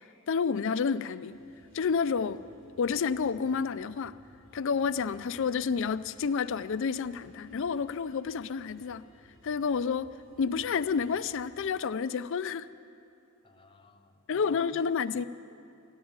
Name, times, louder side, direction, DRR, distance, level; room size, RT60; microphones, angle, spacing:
voice 1, 0.3-1.4 1.7-2.4 2.8-4.1 4.5-9.0 9.4-10.1 10.4-12.7 14.3-15.2, left 6 dB, 60° left, 13 dB, 0.4 m, -29 dB
sound 1, 1.2-11.5, equal, 85° right, 5.1 m, -59 dB
voice 2, 13.4-14.8 15.1-15.2, left 2 dB, 25° left, 4 dB, 0.7 m, -55 dB
14.0 x 11.5 x 8.7 m, 2.5 s
head